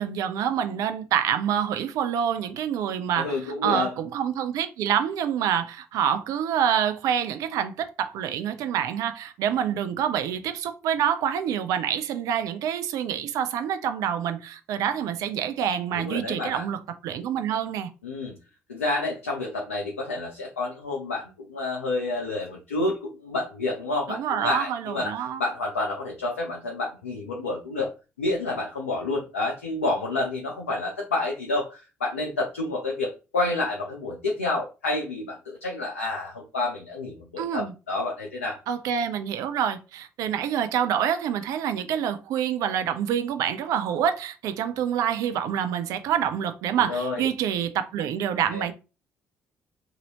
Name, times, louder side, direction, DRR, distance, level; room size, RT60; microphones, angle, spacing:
voice 1, 0.0-3.4 3.6-17.9 24.1-25.4 37.4-37.7 38.7-48.7, right 9 dB, 55° right, 0.4 m, -27 dB
voice 2, 3.2-3.9 15.9-16.7 18.0-18.4 18.7-25.1 25.4-27.9 28.2-38.6 46.8-47.3 48.5-48.7, left 2 dB, 80° left, 0.4 m, -29 dB
2.7 x 2.6 x 2.9 m
figure-of-eight pair, 45°, 7 cm